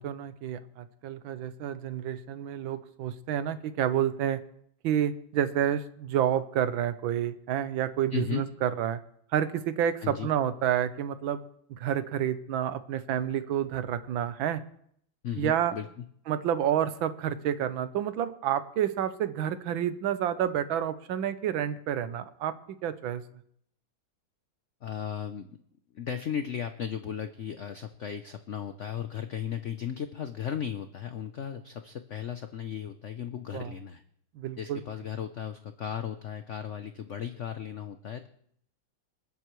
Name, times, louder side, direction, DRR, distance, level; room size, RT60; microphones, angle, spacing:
voice 1, 0.0-4.4 4.8-9.0 9.3-11.4 11.7-14.6 15.4-15.7 16.3-22.5 22.8-23.2 33.5-33.7 34.4-34.8, right 10 dB, 80° right, 12 dB, 1.6 m, -29 dB
voice 2, 8.1-8.5 10.0-10.3 15.2-16.0 24.8-25.6 25.9-34.0 34.6-38.3, left 8 dB, 80° left, 8 dB, 0.6 m, -36 dB
27.5 x 9.3 x 3.1 m, 0.68 s
omnidirectional pair, 2.2 m